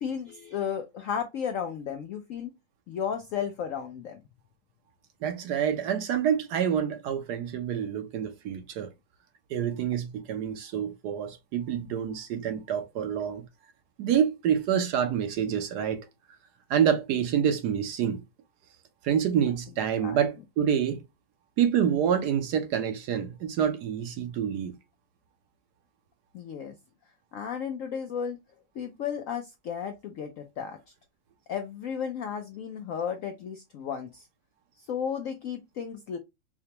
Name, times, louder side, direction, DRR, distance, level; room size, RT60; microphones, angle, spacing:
voice 1, 0.0-2.5 2.9-4.2 20.0-20.2 26.3-26.7 27.3-28.4 28.8-30.8 31.5-34.3 34.8-36.2, left 7 dB, 75° left, 0.7 m, -34 dB
voice 2, 5.2-8.9 9.5-13.4 14.0-16.0 16.7-18.2 19.0-21.0 21.6-24.7, right 8 dB, 70° right, 1.2 m, -27 dB
4.9 x 2.2 x 2.8 m
omnidirectional pair, 1.9 m